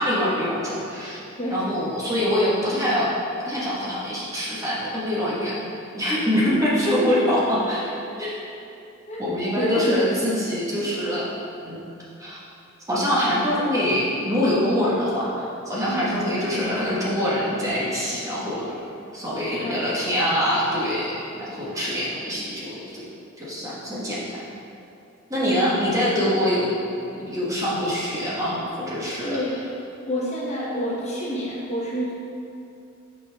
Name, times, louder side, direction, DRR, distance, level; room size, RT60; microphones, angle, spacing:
voice 1, 0.0-1.2 1.5-3.2 3.5-5.5 5.9-7.8 8.2-8.4 9.2-11.3 11.6-11.8 12.2-12.4 12.9-18.7 19.1-23.0 23.4-24.4 25.3-26.7 27.1-29.4, equal, 15° right, -8 dB, 1.4 m, -24 dB
voice 2, 9.5-10.3 15.8-16.0 19.5-20.1 25.4-26.1 29.2-29.6 30.0-32.1, equal, 35° left, -5 dB, 1.0 m, -28 dB
7.4 x 5.6 x 3.5 m, 2.6 s
head